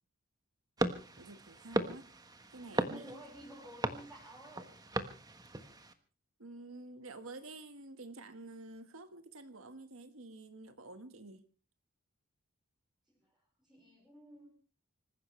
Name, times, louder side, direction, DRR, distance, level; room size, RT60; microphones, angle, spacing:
sound 1, 0.8-5.9, right 1 dB, 15° right, 1.4 m, -38 dB
voice 1, 1.2-2.1 2.5-3.2 6.4-11.4, right 2 dB, 65° right, 1.7 m, -49 dB
voice 2, 2.5-4.8 13.1-14.5, right 1 dB, ahead, 5.0 m, -53 dB
26.0 x 15.5 x 3.3 m
head